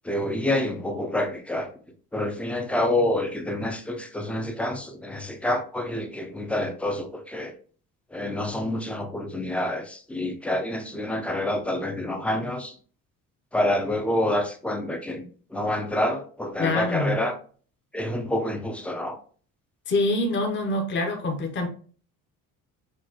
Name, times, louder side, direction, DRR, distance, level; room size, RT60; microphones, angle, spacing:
voice 1, 0.1-1.7 2.1-7.5 8.1-12.7 13.5-15.3 15.5-17.3 17.9-19.2, left 1 dB, 5° left, 6 dB, 0.4 m, -27 dB
voice 2, 16.6-17.2 19.9-21.7, left 2 dB, 35° left, 3 dB, 0.8 m, -25 dB
6.3 x 2.3 x 2.8 m, 0.42 s
cardioid pair, 165°, 34 cm